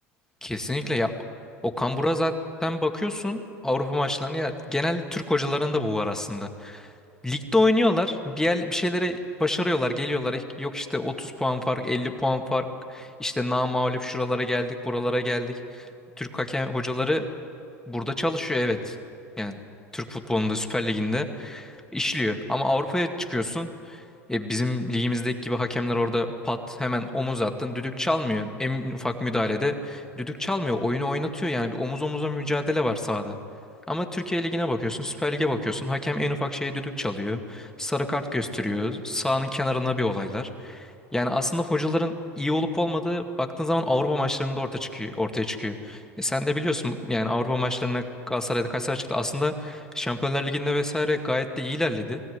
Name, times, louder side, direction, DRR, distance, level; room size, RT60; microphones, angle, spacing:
voice 1, 0.4-1.1 1.6-2.3 2.6-6.9 7.2-15.9 16.2-17.3 17.9-19.0 19.4-19.6 19.9-33.4 33.9-52.2, left 1 dB, 5° left, 4 dB, 2.2 m, -27 dB
20.5 x 16.5 x 9.6 m, 2.5 s
hypercardioid pair, 85°, 8 cm